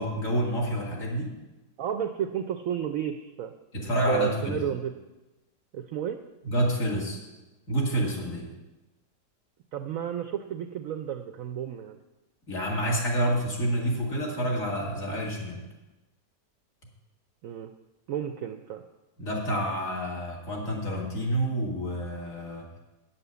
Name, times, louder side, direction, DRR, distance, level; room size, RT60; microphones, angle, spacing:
voice 1, 0.0-1.3 3.7-4.6 6.4-7.2 7.7-8.5 12.5-15.6 19.2-22.7, right 1 dB, 50° left, -2 dB, 2.5 m, -28 dB
voice 2, 1.8-3.5 4.0-4.9 5.7-6.2 9.7-12.0 17.4-17.7 18.1-18.8, right 9 dB, 70° right, 7 dB, 0.8 m, -32 dB
9.1 x 7.1 x 6.8 m, 1.1 s
omnidirectional pair, 1.9 m